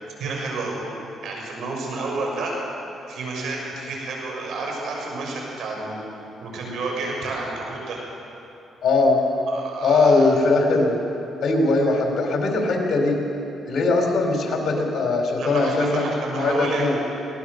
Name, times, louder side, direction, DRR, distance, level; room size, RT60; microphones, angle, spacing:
voice 1, 0.2-0.8 1.2-2.5 3.1-6.0 6.4-8.0 9.5-10.4 15.4-16.9, right 3 dB, 75° right, -1 dB, 6.5 m, -30 dB
voice 2, 8.8-9.2 9.8-11.0 11.4-13.2 13.7-16.1 16.4-17.0, left 3 dB, 55° left, 2 dB, 4.3 m, -20 dB
22.0 x 18.5 x 6.6 m, 2.9 s
cardioid pair, 90°, 0 cm